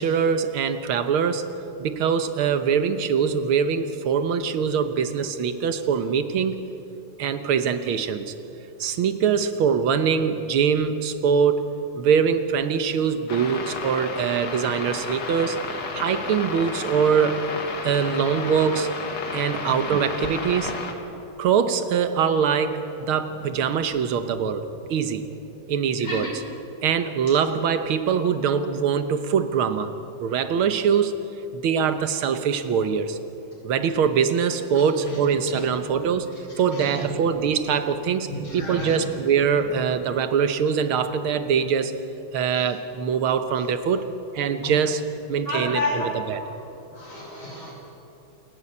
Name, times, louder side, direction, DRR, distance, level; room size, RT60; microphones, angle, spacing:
voice 1, 0.0-1.4 1.8-6.6 7.2-8.3 8.8-15.6 15.9-17.4 17.8-18.9 19.3-20.8 21.4-24.6 24.9-25.3 25.7-26.4 26.8-31.1 31.5-33.2 33.6-36.3 36.6-41.9 42.3-44.1 44.3-45.0 45.3-46.4, right 7 dB, 85° right, 10 dB, 1.9 m, -23 dB
sound 1, 13.3-20.9, left 4 dB, 55° left, 2.1 m, -32 dB
voice 2, 38.3-39.0 44.6-44.7 45.5-46.1 46.9-47.7, left 2 dB, 75° left, -3 dB, 6.6 m, -30 dB
28.0 x 11.0 x 8.6 m, 2.9 s
omnidirectional pair, 2.3 m